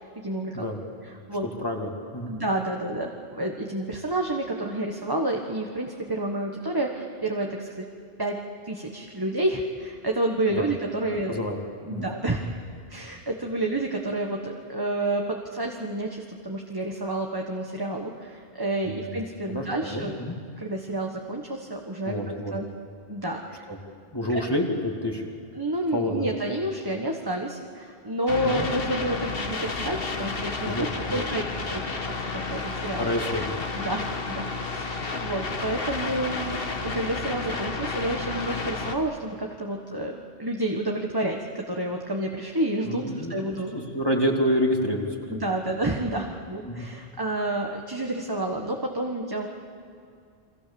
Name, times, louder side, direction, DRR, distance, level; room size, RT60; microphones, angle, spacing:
voice 1, 0.1-0.6 1.3-1.5 2.3-7.9 8.2-8.4 8.6-11.4 11.8-12.4 12.9-20.1 20.6-22.1 22.5-22.7 23.1-23.7 24.3-24.4 25.5-31.4 31.7-31.8 32.0-33.1 33.7-43.7 45.3-49.5, right 1 dB, 20° right, 1 dB, 1.5 m, -29 dB
voice 2, 1.6-2.3 10.6-10.7 11.3-11.6 11.9-12.1 19.0-19.1 19.5-20.4 22.1-22.5 23.7-23.8 24.1-25.2 25.9-26.3 28.4-28.7 30.6-31.2 31.7-31.8 33.0-33.5 42.8-43.4 43.7-45.4 46.6-46.9, equal, 25° left, 0 dB, 2.5 m, -28 dB
sound 1, 28.3-39.0, left 3 dB, 65° left, 1.7 m, -31 dB
29.5 x 24.0 x 7.1 m, 2.4 s
omnidirectional pair, 1.0 m